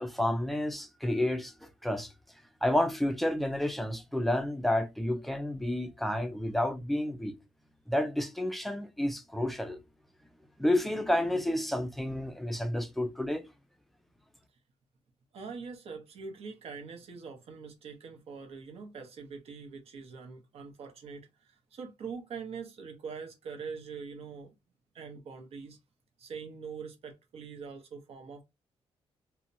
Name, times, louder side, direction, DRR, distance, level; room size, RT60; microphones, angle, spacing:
voice 1, 0.0-2.1 2.6-7.4 7.9-9.8 10.6-13.5, left 1 dB, ahead, 0.3 m, -30 dB
voice 2, 15.3-24.5 24.9-25.8 26.2-28.4, right 5 dB, 70° right, 0.8 m, -43 dB
2.7 x 2.1 x 2.6 m
wide cardioid pair, 145°, 11 cm